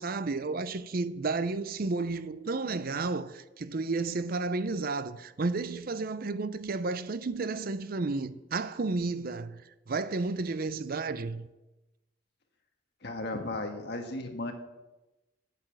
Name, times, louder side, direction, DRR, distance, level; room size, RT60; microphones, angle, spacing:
voice 1, 0.0-11.5, right 3 dB, 50° right, 0.5 m, -32 dB
voice 2, 13.0-14.5, left 2 dB, 55° left, 1.6 m, -35 dB
8.7 x 8.6 x 7.6 m
head